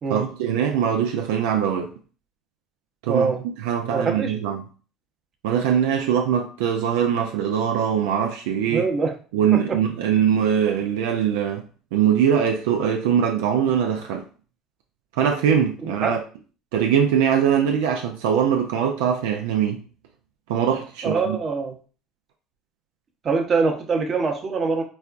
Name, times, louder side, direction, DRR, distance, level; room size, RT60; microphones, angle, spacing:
voice 1, 0.1-1.9 3.0-4.6 5.4-8.9 9.3-14.3 15.1-16.2 16.7-19.8 20.5-21.4, right 8 dB, 80° right, 0.4 m, -22 dB
voice 2, 3.1-3.4 3.9-4.4 8.7-9.1 9.5-9.8 15.8-16.2 21.0-21.7 23.2-24.8, right 4 dB, 40° right, 0.8 m, -24 dB
4.1 x 2.2 x 2.5 m
supercardioid pair, 85°, 0 cm